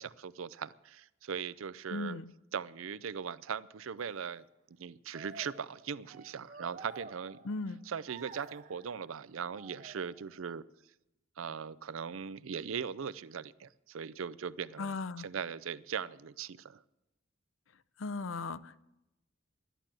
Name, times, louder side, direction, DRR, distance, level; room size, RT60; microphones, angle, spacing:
voice 1, 0.0-2.2 2.5-4.4 4.8-7.4 7.9-10.6 11.4-16.8, right 7 dB, 80° right, 17 dB, 0.5 m, -39 dB
voice 2, 1.9-2.3 7.4-7.8 14.8-15.3 18.0-18.8, left 3 dB, 75° left, 16 dB, 0.6 m, -37 dB
sound 1, 4.0-4.3 5.1-7.8 8.1-9.0 9.5-10.4, right 4 dB, 40° right, 0.7 m, -51 dB
11.5 x 11.0 x 7.5 m, 0.91 s
head